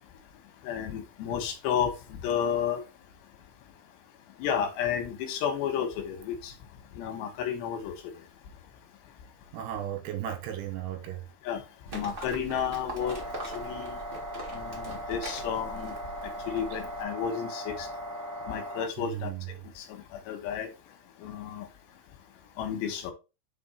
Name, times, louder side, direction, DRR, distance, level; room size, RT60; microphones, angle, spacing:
voice 1, 0.6-1.9 2.2-2.8 4.4-6.5 7.0-7.9 11.5-11.6 11.9-13.2 13.6-14.0 14.5-15.9 16.5-17.7 18.5-19.3 19.8-19.9 20.3-20.7 21.2-21.7 22.6-23.1, left 8 dB, 85° left, 3.4 m, -31 dB
voice 2, 9.5-11.2 19.0-19.4, right 11 dB, 80° right, 3.4 m, -35 dB
Livestock farm animals working animals, 11.9-17.0, right 2 dB, 50° right, 0.6 m, -42 dB
sound 1, 13.0-18.9, equal, 30° right, 1.9 m, -38 dB
5.9 x 5.2 x 4.3 m
omnidirectional pair, 4.9 m